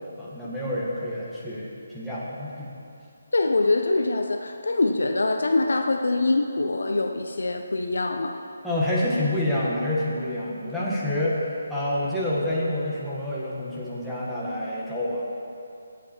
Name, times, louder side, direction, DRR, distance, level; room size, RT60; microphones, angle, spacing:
voice 1, 0.2-2.7 8.6-15.2, left 1 dB, ahead, -10 dB, 1.4 m, -28 dB
voice 2, 3.3-8.4, left 2 dB, 85° left, 5 dB, 0.7 m, -24 dB
16.0 x 7.9 x 4.4 m, 2.5 s
hypercardioid pair, 170°, 0 cm